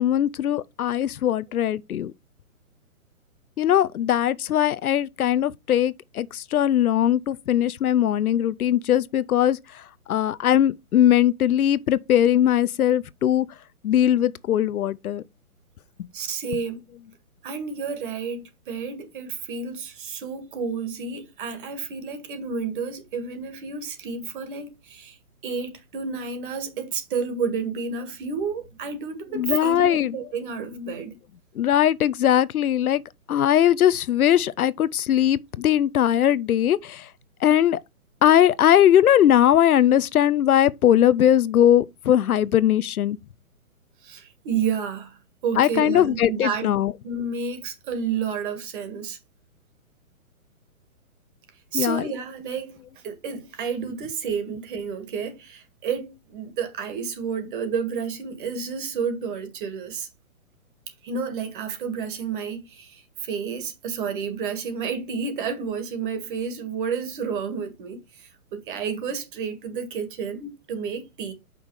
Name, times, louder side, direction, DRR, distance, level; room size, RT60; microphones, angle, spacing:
voice 1, 0.0-2.1 3.6-9.8 10.1-13.5 13.8-15.2 29.3-30.2 31.6-33.0 33.3-37.1 37.4-37.8 38.2-43.2 45.6-46.9 51.7-52.1, left 11 dB, 75° left, 0.7 m, -20 dB
voice 2, 16.1-16.8 17.4-25.2 25.4-31.2 44.0-46.7 47.0-49.2 51.7-60.1 61.0-71.3, right 6 dB, 35° right, 1.8 m, -30 dB
6.3 x 5.8 x 4.7 m
hypercardioid pair, 160°, 44 cm